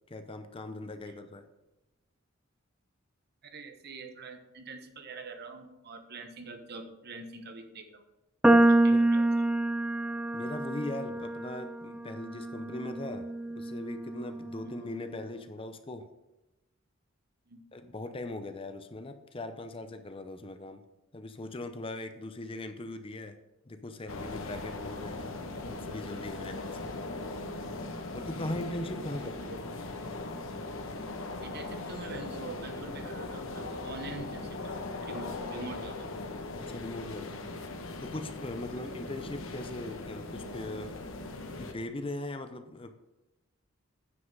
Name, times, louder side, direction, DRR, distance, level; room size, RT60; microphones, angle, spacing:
voice 1, 0.1-1.5 8.9-9.0 10.3-16.1 17.7-20.8 21.1-23.4 23.7-27.0 28.1-29.5 36.6-37.4 38.0-41.2 41.6-43.0, left 2 dB, 25° left, 9 dB, 0.6 m, -40 dB
voice 2, 3.4-8.0 8.7-9.5 14.6-14.8 17.5-17.6 29.2-29.6 31.4-36.1 38.7-38.9, right 3 dB, 50° right, 6 dB, 1.1 m, -45 dB
sound 1, 8.4-14.8, right 1 dB, 5° right, 0.3 m, -27 dB
sound 2, 24.1-41.7, left 2 dB, 80° left, 1.1 m, -39 dB
9.7 x 5.6 x 5.3 m, 0.98 s
head